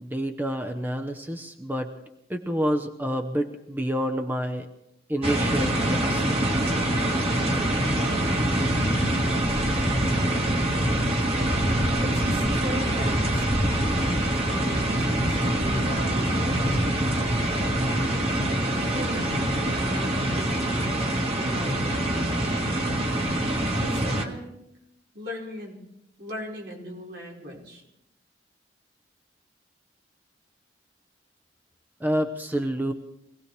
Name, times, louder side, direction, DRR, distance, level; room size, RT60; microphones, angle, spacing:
voice 1, 0.0-1.9 2.3-4.7 5.1-6.2 32.0-32.9, equal, 10° right, 6 dB, 0.8 m, -28 dB
sound 1, 5.2-24.2, right 1 dB, 35° right, 2.0 m, -24 dB
voice 2, 12.0-13.4 14.2-16.6 18.9-22.2 23.8-24.5 25.1-25.8 26.2-27.8, equal, 75° right, -3 dB, 5.1 m, -38 dB
24.5 x 17.5 x 3.3 m, 0.82 s
head